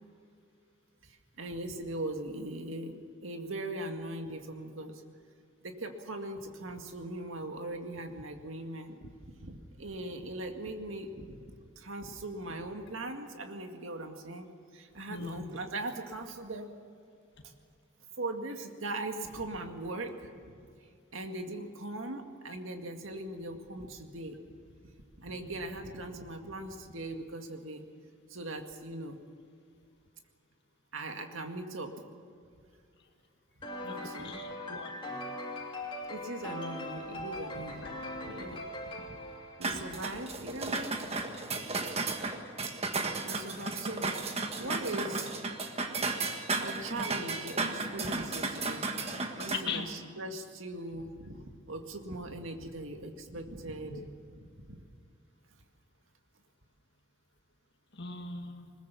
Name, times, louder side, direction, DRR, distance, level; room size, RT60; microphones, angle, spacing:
voice 1, 1.0-5.0 5.6-9.1 9.4-11.4 11.8-14.5 14.7-16.7 17.4-17.5 18.2-20.6 21.1-24.4 24.8-27.8 28.3-29.2 30.9-31.9 33.9-34.4 36.1-38.7 39.1-39.2 39.6-41.0 43.2-45.3 46.6-54.0 54.4-54.8, right 2 dB, 80° right, 4 dB, 2.0 m, -40 dB
voice 2, 15.1-15.6 33.8-35.3 37.4-37.5 37.8-37.9 49.5-49.9 53.9-54.1 57.9-58.7, left 5 dB, 55° left, 3 dB, 2.1 m, -40 dB
sound 1, 33.6-40.3, left 1 dB, 25° left, 3.1 m, -41 dB
sound 2, 39.6-49.6, right 3 dB, 30° right, 1.5 m, -34 dB
21.0 x 20.5 x 7.0 m, 2.3 s
head